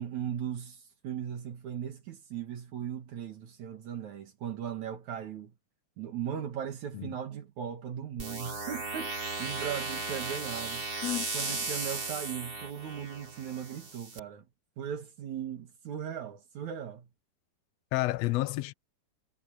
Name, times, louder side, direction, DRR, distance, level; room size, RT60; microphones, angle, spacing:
voice 1, 0.0-5.5 6.0-10.9 11.3-14.4 14.8-17.1, right 9 dB, 70° right, 3.0 m, -38 dB
sound 1, 8.2-14.2, right 3 dB, 30° right, 4.1 m, -36 dB
voice 2, 17.9-18.7, left 17 dB, 75° left, 1.6 m, -30 dB
omnidirectional pair, 3.5 m